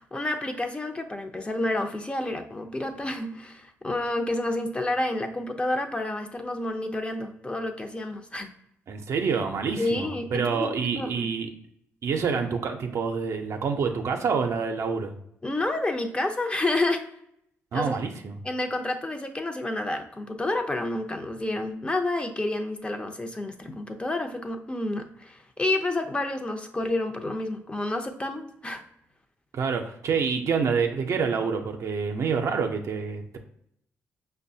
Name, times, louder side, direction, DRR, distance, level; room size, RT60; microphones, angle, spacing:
voice 1, 0.0-8.5 9.8-11.3 15.4-17.0 17.7-18.0 18.4-28.8, left 2 dB, 20° left, 6 dB, 0.6 m, -29 dB
voice 2, 8.9-11.5 12.0-15.1 17.7-18.4 29.5-33.4, right 5 dB, 60° right, 3 dB, 0.5 m, -27 dB
5.3 x 2.1 x 2.7 m, 0.74 s
cardioid pair, 70°, 6 cm